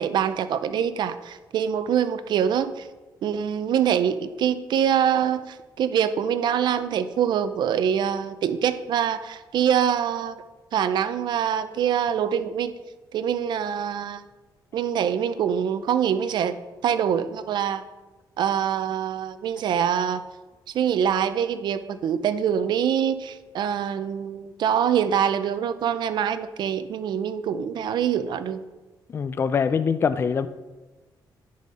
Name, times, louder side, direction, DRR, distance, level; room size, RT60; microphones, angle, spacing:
voice 1, 0.0-2.9 3.2-10.4 10.7-12.7 13.1-14.2 14.7-16.6 16.8-17.8 18.4-20.2 20.7-28.6, right 8 dB, 65° right, 12 dB, 0.5 m, -24 dB
voice 2, 29.1-30.5, left 6 dB, 30° left, 12 dB, 0.3 m, -23 dB
10.5 x 4.2 x 4.9 m, 1.2 s
cardioid pair, 130°, 8 cm